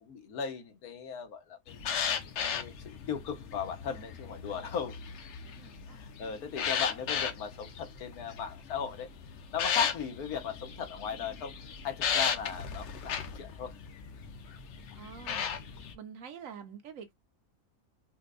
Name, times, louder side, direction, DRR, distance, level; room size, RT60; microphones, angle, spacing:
voice 1, 0.0-1.8 2.4-5.0 5.9-9.1 9.5-11.5 11.8-13.7, left 6 dB, 80° left, 1.4 m, -37 dB
sound 1, 1.7-15.9, left 7 dB, 60° left, 0.8 m, -36 dB
voice 2, 5.4-6.0 15.0-15.4 15.9-17.1, right 7 dB, 65° right, 1.2 m, -46 dB
4.4 x 2.2 x 2.4 m
omnidirectional pair, 1.6 m